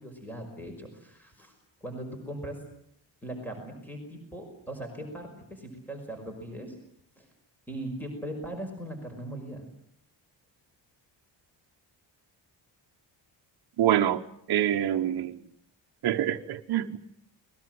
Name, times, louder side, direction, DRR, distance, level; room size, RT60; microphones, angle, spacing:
voice 1, 0.0-1.5 1.8-2.6 3.2-6.8 7.2-7.3 7.7-9.7, right 1 dB, 5° left, 5.5 m, -39 dB
voice 2, 13.8-14.2 14.5-15.4 16.0-17.0, right 11 dB, 55° right, 1.4 m, -25 dB
29.5 x 21.0 x 7.9 m
cardioid pair, 170°, 46 cm